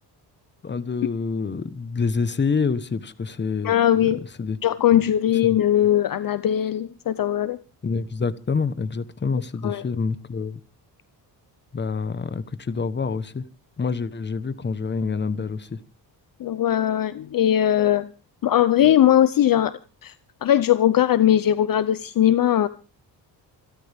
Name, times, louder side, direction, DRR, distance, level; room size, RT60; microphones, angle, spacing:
voice 1, 0.6-4.0 4.4-4.6 7.8-10.6 11.7-13.4 13.8-15.8, left 5 dB, 25° left, 1.2 m, -27 dB
voice 2, 3.6-4.2 4.6-7.6 9.6-9.8 16.4-18.1 18.4-20.1 20.4-22.7, left 11 dB, 55° left, 0.7 m, -20 dB
27.0 x 12.5 x 3.6 m
cardioid pair, 130°, 42 cm